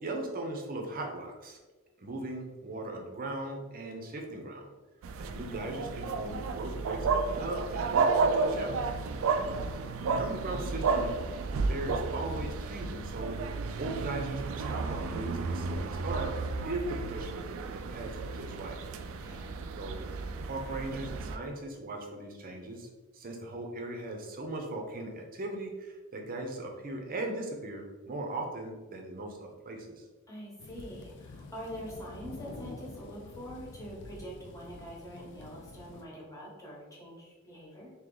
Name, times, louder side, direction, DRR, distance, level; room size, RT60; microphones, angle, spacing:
voice 1, 0.0-1.6 2.0-4.7 5.2-8.8 10.0-11.1 11.6-16.3 16.6-17.4 17.7-18.8 19.8-20.1 20.4-30.0, right 2 dB, 45° right, 2 dB, 0.7 m, -38 dB
sound 1, 5.0-21.4, right 4 dB, 70° right, 0.3 m, -32 dB
voice 2, 9.4-10.1 19.0-19.6 30.3-37.9, equal, 15° left, -5 dB, 1.2 m, -45 dB
sound 2, 30.6-36.0, left 3 dB, 55° left, 0.4 m, -47 dB
3.1 x 2.9 x 3.8 m, 1.2 s
head